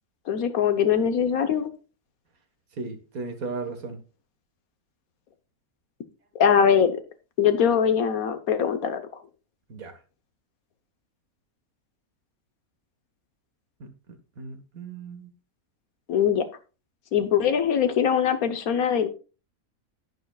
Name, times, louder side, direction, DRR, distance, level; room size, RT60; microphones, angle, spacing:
voice 1, 0.3-1.7 6.4-6.9 7.4-9.0 16.1-16.4 17.1-19.1, left 8 dB, 75° left, 9 dB, 1.4 m, -22 dB
voice 2, 2.7-4.0 9.7-10.0 13.8-13.9 14.4-15.3, right 3 dB, 75° right, 7 dB, 1.9 m, -36 dB
10.5 x 9.7 x 2.4 m, 0.33 s
omnidirectional pair, 1.5 m